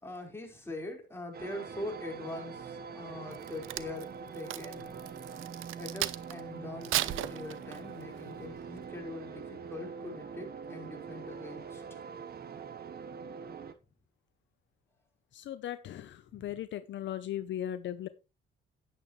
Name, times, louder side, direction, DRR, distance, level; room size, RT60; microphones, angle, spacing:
voice 1, 0.0-4.9 5.8-11.8 16.3-16.5, left 2 dB, 10° left, 0 dB, 4.7 m, -43 dB
sound 1, 1.3-13.7, right 6 dB, 50° right, 1.3 m, -44 dB
Crack, 3.3-6.4 6.8-8.0 8.5-8.8, right 15 dB, 85° right, 0.7 m, -35 dB
voice 2, 15.3-18.1, left 11 dB, 70° left, 12 dB, 0.7 m, -38 dB
10.5 x 9.3 x 3.2 m, 0.28 s
cardioid pair, 90°, 20 cm